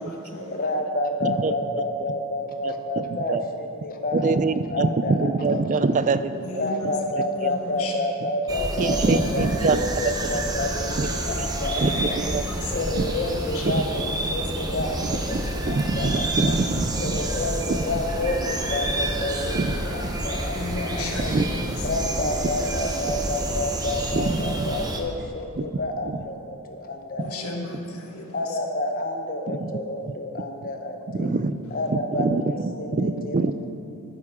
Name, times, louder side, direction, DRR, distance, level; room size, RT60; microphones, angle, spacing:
voice 1, 0.0-0.7 6.4-6.9 7.3-7.9 12.2-12.8 13.5-14.2 20.5-21.7 27.2-28.6, left 2 dB, 75° left, 1 dB, 1.5 m, -35 dB
voice 2, 0.5-4.4 4.7-5.6 6.5-12.2 12.7-16.5 17.0-21.3 21.8-27.4 28.3-31.3 31.7-33.4, left 2 dB, 40° left, 4 dB, 0.9 m, -29 dB
voice 3, 1.2-1.5 2.1-2.2 2.6-3.5 4.1-6.3 7.4-7.5 8.8-10.1 11.0-11.1 11.4-11.5 11.7-12.4 13.6-13.8 15.0-17.1 17.7-17.8 19.5-19.8 20.0-20.1 21.3-21.4 24.1-24.8 25.6-25.7 26.0-26.2 27.2-27.3 29.5-29.7 30.1-30.2 31.1-31.6 31.9-33.5, right 3 dB, 35° right, 12 dB, 0.4 m, -25 dB
sound 1, 8.5-25.0, right 1 dB, 20° right, 0.8 m, -29 dB
13.5 x 9.3 x 3.7 m, 2.7 s
head